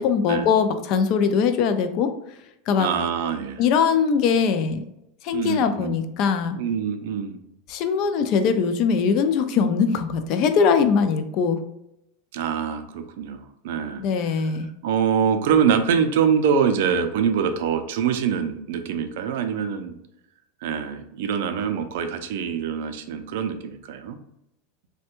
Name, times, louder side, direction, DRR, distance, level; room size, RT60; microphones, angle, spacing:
voice 1, 0.0-2.1 2.7-2.9 3.6-4.8 5.2-6.6 7.7-11.6 14.0-14.7, left 6 dB, 40° left, 9 dB, 0.3 m, -21 dB
voice 2, 2.8-3.6 5.3-6.0 6.6-7.4 12.3-14.0 14.3-14.5 14.8-19.9 20.6-24.2, right 7 dB, 65° right, 8 dB, 0.4 m, -24 dB
3.2 x 2.1 x 2.9 m, 0.82 s
supercardioid pair, 165°, 0 cm